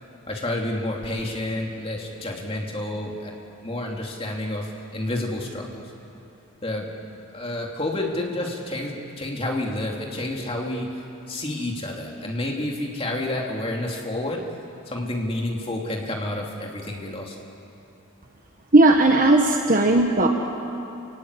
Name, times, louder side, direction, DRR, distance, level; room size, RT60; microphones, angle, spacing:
voice 1, 0.3-5.8 6.6-6.9 7.3-11.0 11.3-14.4 14.9-17.3, left 1 dB, 25° left, 0 dB, 2.9 m, -29 dB
voice 2, 18.7-20.3, right 2 dB, 40° right, 2 dB, 1.3 m, -16 dB
29.5 x 16.5 x 9.9 m, 2.8 s
head